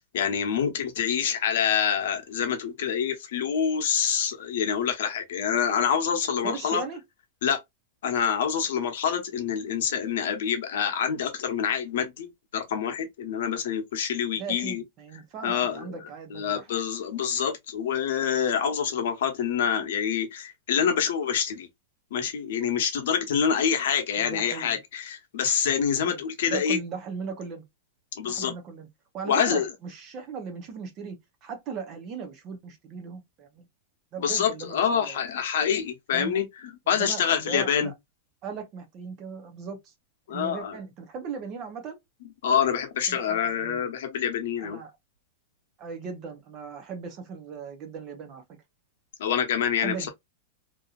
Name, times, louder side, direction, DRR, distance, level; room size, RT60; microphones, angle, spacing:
voice 1, 0.1-6.8 7.4-7.6 8.0-14.8 15.4-15.9 16.3-21.7 22.1-26.8 28.2-28.5 29.3-29.7 34.2-36.4 36.9-37.9 40.3-40.8 42.4-44.8 49.2-50.1, left 7 dB, 65° left, 0.9 m, -26 dB
voice 2, 6.4-7.0 14.3-16.7 24.2-24.8 25.9-27.6 28.2-28.9 29.1-33.7 34.1-35.2 36.1-36.3 36.9-37.9 38.4-39.9 40.3-42.0 43.1-43.9 44.6-44.9 45.8-48.4 49.8-50.1, right 6 dB, 25° right, 0.6 m, -38 dB
2.7 x 2.6 x 2.3 m
supercardioid pair, 175°, 0 cm